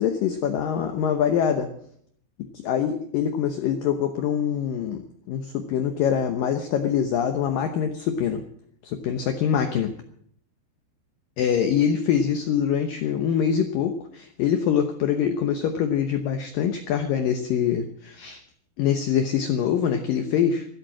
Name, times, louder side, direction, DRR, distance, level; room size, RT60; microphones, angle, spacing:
voice 1, 0.0-1.7 2.5-8.4 8.8-9.9 11.4-18.4 18.8-20.7, left 8 dB, 80° left, 7 dB, 2.0 m, -24 dB
13.0 x 12.5 x 7.5 m, 0.65 s
omnidirectional pair, 5.3 m